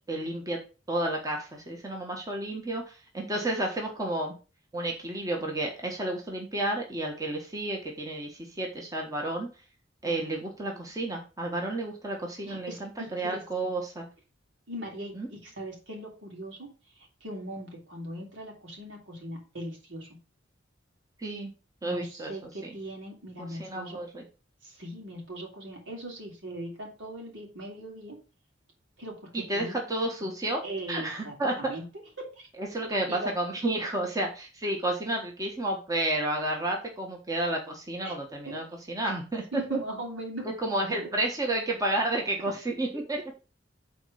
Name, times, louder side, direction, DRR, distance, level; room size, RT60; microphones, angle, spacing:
voice 1, 0.1-0.6 0.9-4.3 4.7-9.5 10.0-14.1 15.1-15.3 21.2-21.5 21.8-22.8 23.4-24.2 29.3-30.6 30.9-31.7 32.6-39.8 40.4-43.2, right 1 dB, 20° right, 1 dB, 1.3 m, -31 dB
voice 2, 12.5-13.4 14.7-16.7 17.0-20.1 21.8-24.0 24.6-28.2 29.0-29.7 30.6-31.8 32.2-32.5 33.1-33.3 38.0-38.2 38.4-38.5 39.0-39.1 39.5-40.5 41.0-41.1 42.9-43.0, right 1 dB, 75° right, 0 dB, 3.1 m, -40 dB
6.2 x 4.3 x 6.3 m, 0.33 s
head